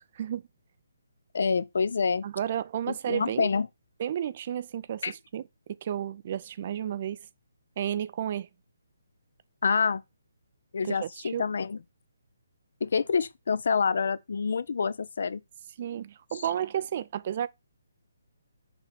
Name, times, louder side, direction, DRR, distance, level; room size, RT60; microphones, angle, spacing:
voice 1, 1.3-2.2 2.9-3.7 5.0-5.1 9.6-10.0 10.7-11.8 12.8-15.4, left 5 dB, 60° left, 0.5 m, -27 dB
voice 2, 2.2-3.5 4.0-5.4 5.7-7.2 7.8-8.5 10.8-11.5 15.8-17.5, right 10 dB, 40° right, 0.4 m, -32 dB
5.9 x 3.4 x 5.7 m
figure-of-eight pair, 145°, 0 cm